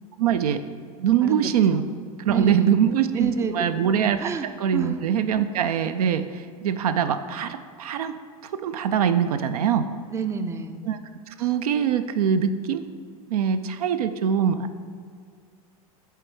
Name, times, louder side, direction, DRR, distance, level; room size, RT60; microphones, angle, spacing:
voice 1, 0.2-0.6 1.0-1.8 2.2-4.3 4.6-8.1 8.5-9.9 10.8-11.0 11.3-12.8 13.3-14.7, right 8 dB, 75° right, 10 dB, 0.4 m, -23 dB
voice 2, 1.2-1.9 2.3-3.9 4.2-5.0 10.1-10.9, right 5 dB, 15° right, 8 dB, 0.4 m, -30 dB
8.1 x 3.4 x 4.6 m, 2.1 s
hypercardioid pair, 90°, 19 cm